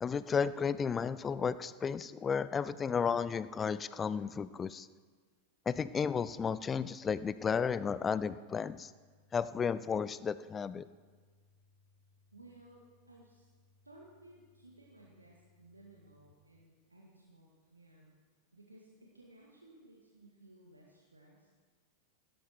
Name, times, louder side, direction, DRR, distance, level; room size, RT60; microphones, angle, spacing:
voice 1, 0.0-4.9 5.7-8.9 9.3-10.9, left 6 dB, 20° left, 16 dB, 0.5 m, -33 dB
sound 1, 6.3-16.3, left 3 dB, 65° left, 1.9 m, -69 dB
voice 2, 12.3-13.5 13.8-18.2 18.5-21.5, right 2 dB, 85° right, -3 dB, 1.9 m, -58 dB
16.5 x 13.0 x 4.6 m, 1.5 s
figure-of-eight pair, 90°, 0 cm